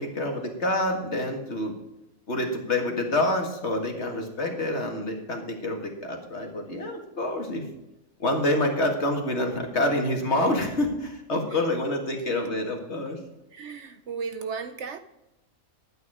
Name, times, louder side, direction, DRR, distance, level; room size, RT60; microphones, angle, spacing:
voice 1, 0.0-1.7 2.3-7.7 8.2-13.2, left 1 dB, 50° left, 2.2 m, -27 dB
voice 2, 13.5-15.0, right 5 dB, 60° right, 0.9 m, -34 dB
11.5 x 9.2 x 4.9 m
omnidirectional pair, 1.5 m